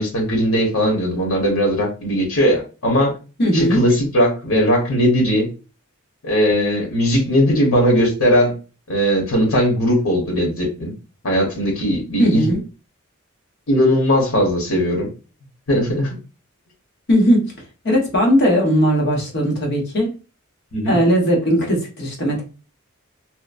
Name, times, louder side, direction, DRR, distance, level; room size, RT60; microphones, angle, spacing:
voice 1, 0.0-3.1 3.5-5.5 6.2-8.5 8.9-10.9 11.2-12.4 13.7-15.1 15.7-16.2 20.7-21.0, equal, 85° left, 0 dB, 1.1 m, -18 dB
voice 2, 3.4-3.8 12.2-12.6 17.1-17.5 17.8-20.1 20.9-22.4, equal, 50° left, -1 dB, 1.0 m, -17 dB
2.9 x 2.1 x 2.4 m, 0.33 s
head